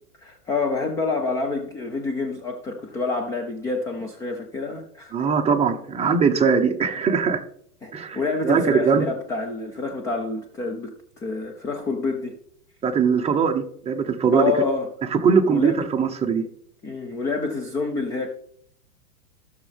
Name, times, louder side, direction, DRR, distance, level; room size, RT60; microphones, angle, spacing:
voice 1, 0.2-5.1 7.8-12.3 14.3-14.9 15.4-15.9 16.8-18.3, left 3 dB, 10° left, 3 dB, 0.4 m, -27 dB
voice 2, 5.1-7.4 7.9-9.1 12.8-14.5 15.1-16.4, right 6 dB, 15° right, 3 dB, 1.0 m, -21 dB
15.0 x 6.5 x 3.5 m, 0.65 s
hypercardioid pair, 120°, 46 cm